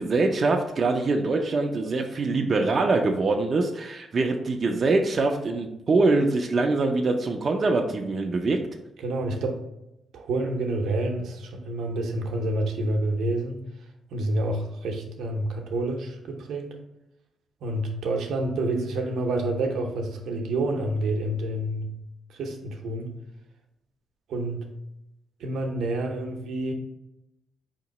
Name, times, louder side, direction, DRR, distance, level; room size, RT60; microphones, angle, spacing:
voice 1, 0.0-8.6, right 3 dB, 45° right, 2 dB, 0.4 m, -24 dB
voice 2, 9.0-9.6 10.1-13.6 14.1-16.7 17.6-21.9 22.3-23.2 24.3-24.7 25.4-26.7, right 2 dB, 85° right, 2 dB, 0.7 m, -28 dB
4.4 x 2.9 x 4.0 m, 0.88 s
cardioid pair, 90°, 0 cm